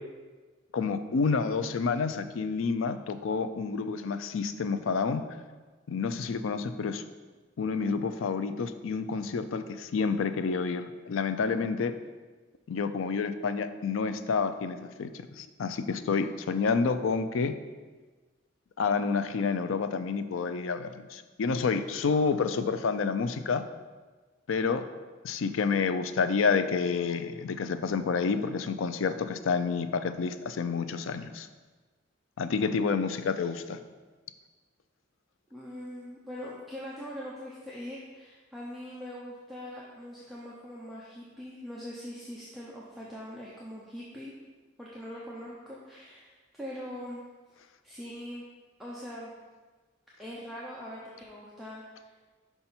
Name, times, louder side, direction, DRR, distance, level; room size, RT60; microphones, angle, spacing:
voice 1, 0.7-5.2 5.9-7.0 7.6-11.9 12.7-15.1 15.4-17.5 18.8-23.6 24.5-24.8 25.2-31.5 32.4-33.8, left 5 dB, 85° left, 10 dB, 0.4 m, -29 dB
voice 2, 35.5-44.3 44.8-47.2 47.8-48.5 48.8-49.3 50.2-52.1, equal, ahead, -6 dB, 0.7 m, -42 dB
5.7 x 5.5 x 4.3 m, 1.4 s
head